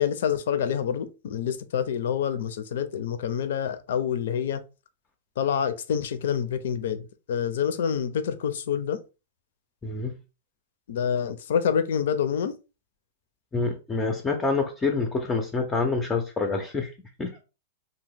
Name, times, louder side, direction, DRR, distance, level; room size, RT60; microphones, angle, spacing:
voice 1, 0.0-4.6 5.4-9.0 10.9-12.5, left 8 dB, 75° left, 0.4 m, -27 dB
voice 2, 9.8-10.1 13.5-16.9 17.2-17.4, left 4 dB, 10° left, 0.4 m, -27 dB
2.9 x 2.0 x 3.4 m
supercardioid pair, 155°, 0 cm